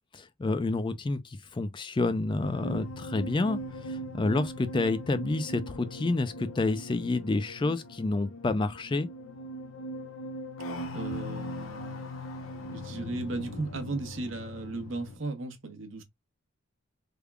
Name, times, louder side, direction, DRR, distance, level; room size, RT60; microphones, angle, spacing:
voice 1, 0.1-9.1, left 2 dB, 25° left, 0.3 m, -29 dB
sound 1, 2.4-15.2, equal, 90° left, 0.8 m, -40 dB
voice 2, 10.9-12.0 12.7-16.0, right 2 dB, 70° right, 1.0 m, -36 dB
3.5 x 2.3 x 3.2 m
head